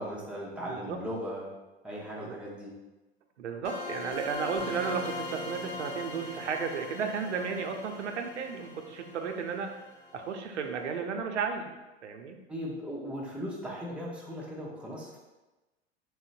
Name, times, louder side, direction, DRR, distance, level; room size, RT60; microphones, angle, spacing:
voice 1, 0.0-1.5 1.8-2.7 12.5-15.2, equal, 5° right, -5 dB, 0.7 m, -38 dB
voice 2, 0.6-1.0 2.2-2.4 3.4-9.8 10.1-12.4, right 5 dB, 85° right, 5 dB, 0.5 m, -34 dB
sound 1, 3.6-10.3, left 2 dB, 55° left, 1.1 m, -40 dB
3.8 x 2.1 x 2.5 m, 1.1 s
hypercardioid pair, 90°, 34 cm